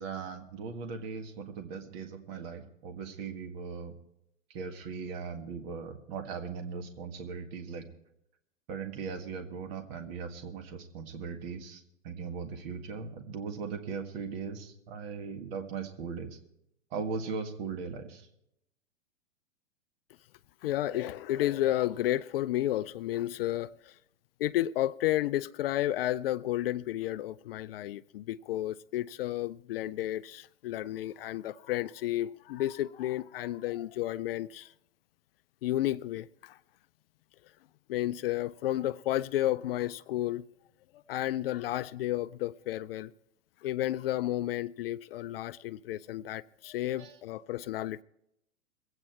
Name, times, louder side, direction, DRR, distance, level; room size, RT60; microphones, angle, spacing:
voice 1, 0.0-3.9 4.5-7.9 8.7-16.4 16.9-18.3 47.0-47.2, right 5 dB, 50° right, 1.8 m, -39 dB
voice 2, 20.6-23.9 24.4-34.7 35.6-36.6 37.9-40.4 41.1-43.1 43.6-48.0, left 14 dB, 50° left, 0.4 m, -32 dB
22.5 x 8.9 x 4.5 m
hypercardioid pair, 115°, 38 cm